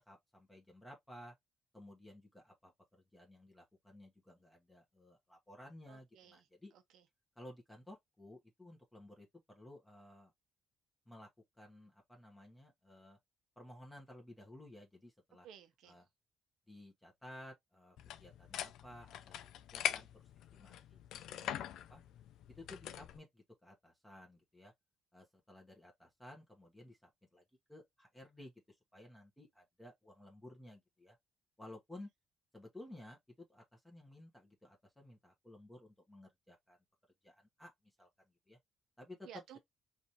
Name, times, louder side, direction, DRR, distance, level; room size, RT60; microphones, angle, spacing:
voice 1, 0.0-1.3 1.7-6.7 7.4-10.3 11.1-11.3 11.6-13.2 13.6-15.5 15.9-16.0 16.7-19.5 19.7-20.2 20.5-21.0 21.3-22.0 22.5-24.7 25.1-27.4 27.7-31.2 31.6-32.1 32.5-36.8 37.2-37.7 38.0-38.1 38.5-38.6 39.0-39.3, left 1 dB, 10° left, 1.3 m, -56 dB
voice 2, 5.9-6.5 6.7-7.0 15.4-16.0 39.2-39.6, right 9 dB, 80° right, 0.9 m, -55 dB
sound 1, 18.0-23.2, left 11 dB, 80° left, 0.4 m, -43 dB
5.0 x 2.7 x 2.9 m
cardioid pair, 95°, 0 cm